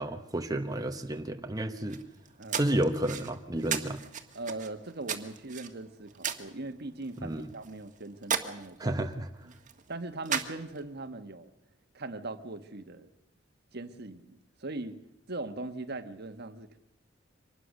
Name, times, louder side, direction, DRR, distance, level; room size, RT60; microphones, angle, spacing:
voice 1, 0.0-2.0 2.5-4.0 7.2-7.5 8.8-9.3, right 1 dB, 20° right, 5 dB, 1.1 m, -31 dB
sound 1, 1.7-11.0, right 7 dB, 40° right, 1.7 m, -38 dB
voice 2, 4.3-9.0 9.9-11.5 11.9-13.1 13.7-15.0 15.3-16.8, right 2 dB, 55° right, 9 dB, 1.4 m, -40 dB
24.5 x 20.0 x 6.5 m, 0.83 s
head